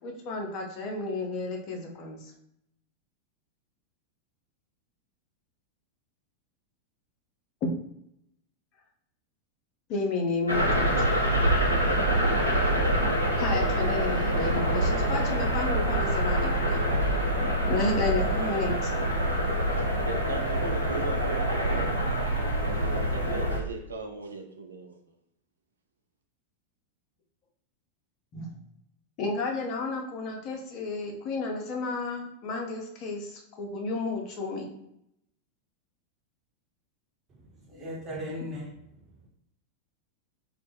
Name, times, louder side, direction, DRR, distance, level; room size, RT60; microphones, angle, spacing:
voice 1, 0.0-2.2 7.6-7.7 9.9-10.9 13.4-16.9 17.6-18.9 28.3-28.6 29.2-34.7, left 3 dB, 40° left, 1 dB, 0.5 m, -32 dB
sound 1, 10.5-23.6, right 1 dB, 90° left, 0.5 m, -25 dB
voice 2, 19.7-21.9 22.3-25.0, right 3 dB, 75° right, 3 dB, 0.3 m, -38 dB
voice 3, 37.3-38.8, equal, 20° right, -4 dB, 1.0 m, -38 dB
2.1 x 2.0 x 3.1 m, 0.78 s
figure-of-eight pair, 90°, 0 cm